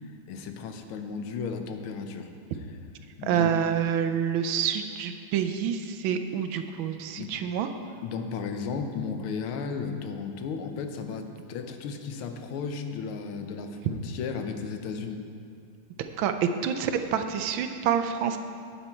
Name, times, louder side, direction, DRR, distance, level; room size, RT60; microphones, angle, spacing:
voice 1, 0.3-2.3 3.2-3.6 7.2-7.4 8.0-15.2, left 5 dB, 85° left, 6 dB, 1.6 m, -34 dB
voice 2, 3.2-7.7 16.2-18.4, right 8 dB, 75° right, 8 dB, 1.3 m, -27 dB
9.8 x 8.6 x 4.4 m, 2.3 s
omnidirectional pair, 2.3 m